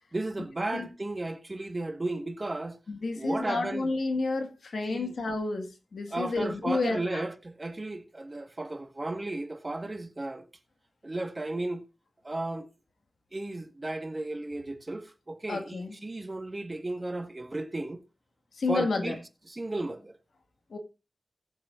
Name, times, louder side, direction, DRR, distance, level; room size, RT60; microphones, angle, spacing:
voice 1, 0.1-2.8 3.2-3.9 4.9-5.1 6.1-10.4 11.0-11.8 12.2-12.7 13.3-18.0 18.7-19.2 19.5-20.1, right 2 dB, 30° right, 1.5 m, -34 dB
voice 2, 2.9-7.3 15.5-16.0 18.5-19.2 20.7-20.8, left 3 dB, 80° left, 1.7 m, -30 dB
19.5 x 7.4 x 2.5 m
wide cardioid pair, 85°, 0 cm